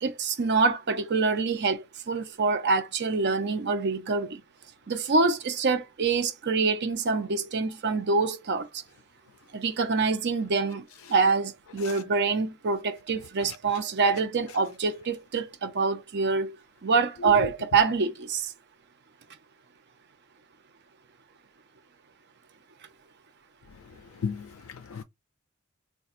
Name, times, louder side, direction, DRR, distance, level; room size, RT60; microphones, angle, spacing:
voice 1, 0.0-4.4 4.9-8.8 9.5-10.8 11.1-16.6 16.8-18.5, right 4 dB, 55° right, 0.6 m, -26 dB
voice 2, 24.2-25.0, left 5 dB, 70° left, 0.3 m, -34 dB
4.1 x 2.3 x 2.5 m
head